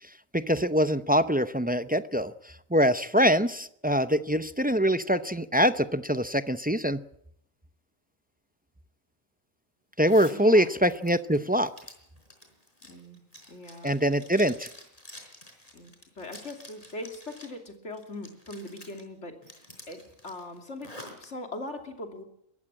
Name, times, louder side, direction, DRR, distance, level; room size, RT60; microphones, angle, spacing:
voice 1, 0.0-7.0 10.0-11.7 13.8-14.7, equal, 10° right, 11 dB, 0.4 m, -24 dB
Zipper (clothing), 10.0-10.4 10.8-17.6 17.9-19.0 19.4-21.3, left 1 dB, 25° left, 4.7 m, -49 dB
voice 2, 10.3-10.7 12.8-13.2 13.5-13.9 14.4-14.5 15.7-19.4 19.9-20.9 21.2-22.2, left 2 dB, 60° left, 4 dB, 3.2 m, -40 dB
22.0 x 15.0 x 8.7 m, 0.74 s
omnidirectional pair, 1.4 m